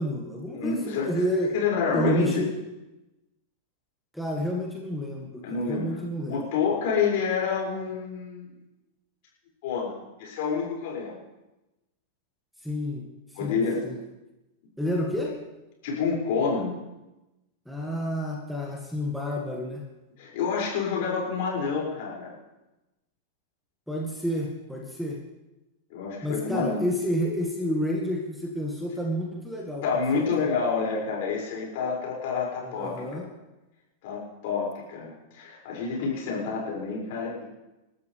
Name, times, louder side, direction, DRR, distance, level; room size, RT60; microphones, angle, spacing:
voice 1, 0.0-1.5 1.9-2.5 4.1-6.5 12.6-13.1 13.3-14.0 14.8-15.3 17.7-19.9 23.9-25.2 26.2-29.8 30.1-30.5 32.6-33.3, equal, ahead, 0 dB, 2.0 m, -30 dB
voice 2, 0.5-1.1 1.5-2.4 5.4-6.0 6.3-8.5 9.6-11.2 13.4-13.9 15.8-16.8 20.2-22.3 25.9-26.8 29.8-33.3 34.0-37.4, left 5 dB, 50° left, -4 dB, 6.3 m, -28 dB
29.5 x 12.5 x 3.5 m, 1.0 s
figure-of-eight pair, 90°, 0 cm